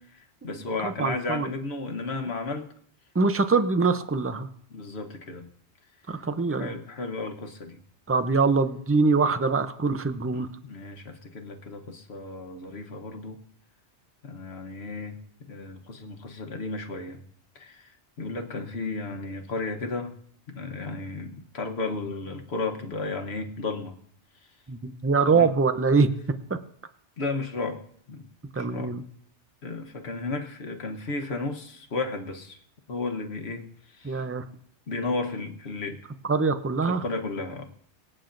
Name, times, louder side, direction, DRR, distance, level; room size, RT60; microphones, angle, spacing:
voice 1, 0.0-2.7 4.7-5.5 6.5-7.8 10.2-13.4 14.2-17.2 17.5-20.1 20.5-24.0 25.2-25.5 27.2-27.8 28.1-28.3 28.6-28.9 29.6-32.6 32.9-34.2 34.9-36.0 36.8-37.7, left 3 dB, 65° left, 5 dB, 1.3 m, -34 dB
voice 2, 0.8-1.5 3.1-4.5 6.1-6.7 8.1-10.5 24.7-26.1 28.5-29.0 34.0-34.4 36.3-37.0, right 4 dB, 20° right, 10 dB, 0.4 m, -23 dB
24.0 x 8.8 x 2.6 m, 0.65 s
omnidirectional pair, 1.2 m